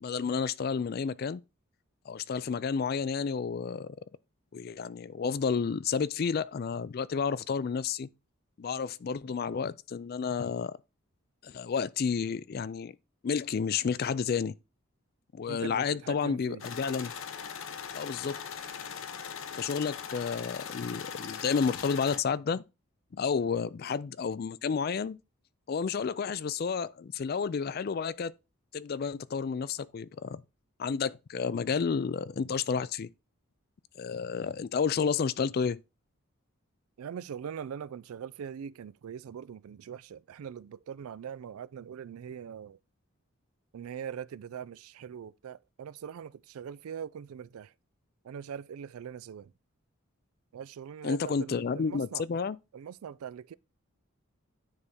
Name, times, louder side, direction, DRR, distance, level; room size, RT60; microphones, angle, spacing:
voice 1, 0.0-1.4 2.1-4.0 4.5-8.1 8.6-10.8 11.4-12.9 13.2-14.5 15.3-17.1 18.0-18.4 19.5-22.6 23.1-25.2 25.7-28.3 28.7-30.4 30.8-33.1 34.0-35.8 51.0-52.6, left 6 dB, 45° left, 0.3 m, -31 dB
voice 2, 15.5-16.6 37.0-42.8 43.7-47.7 48.2-49.5 50.5-52.2 52.7-53.6, right 8 dB, 85° right, 0.3 m, -42 dB
sound 1, 16.6-22.2, left 7 dB, 70° left, 0.7 m, -40 dB
9.7 x 3.6 x 4.1 m
head